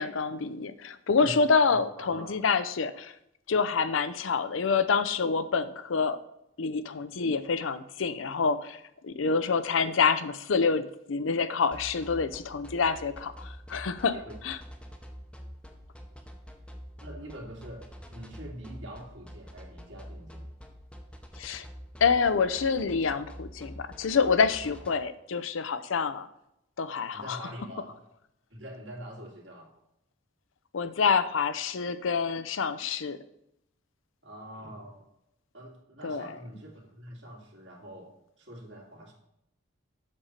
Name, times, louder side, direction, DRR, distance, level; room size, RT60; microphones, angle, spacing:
voice 1, 0.0-3.1 3.5-6.2 6.6-14.1 14.4-14.6 21.4-21.6 22.0-26.3 26.8-27.4 30.7-33.2 36.0-36.3, left 5 dB, 85° left, 13 dB, 0.6 m, -27 dB
voice 2, 2.0-2.4 14.1-14.4 17.0-20.5 27.1-28.0 28.5-29.7 34.2-35.1 35.5-39.1, equal, 70° right, 0 dB, 2.2 m, -44 dB
sound 1, 11.7-24.9, equal, 5° left, 0.7 m, -45 dB
7.6 x 6.5 x 4.3 m, 0.81 s
head